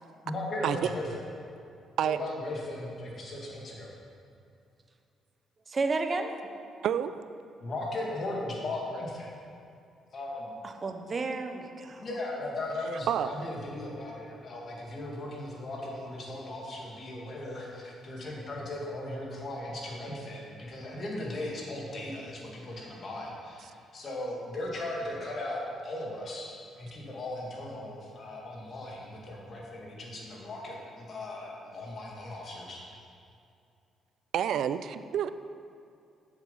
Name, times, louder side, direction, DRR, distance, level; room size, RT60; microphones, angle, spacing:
voice 1, 0.2-1.2 2.0-3.9 7.6-9.3 10.1-10.5 12.0-32.8, left 1 dB, 45° left, -3 dB, 2.2 m, -37 dB
voice 2, 5.7-6.3 10.6-12.1, right 3 dB, 35° right, 6 dB, 0.8 m, -32 dB
voice 3, 34.3-35.3, right 9 dB, 75° right, 12 dB, 0.4 m, -28 dB
7.5 x 7.3 x 5.5 m, 2.5 s
cardioid pair, 90°, 0 cm